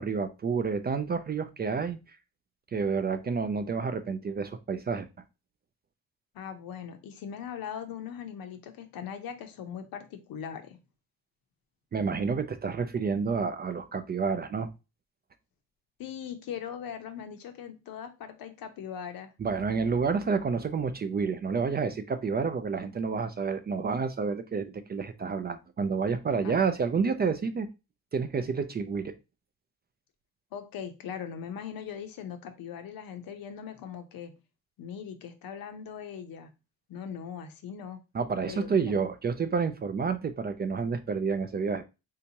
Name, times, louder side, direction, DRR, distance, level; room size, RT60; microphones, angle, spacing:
voice 1, 0.0-2.0 2.7-5.1 11.9-14.7 19.4-27.7 28.1-29.1 38.1-41.8, right 5 dB, 30° right, 0.4 m, -29 dB
voice 2, 6.3-10.8 16.0-19.3 26.4-26.5 30.5-34.3 34.8-36.5 36.9-38.0 38.5-38.9, left 8 dB, 70° left, 0.7 m, -40 dB
3.4 x 2.8 x 2.8 m
cardioid pair, 85°, 36 cm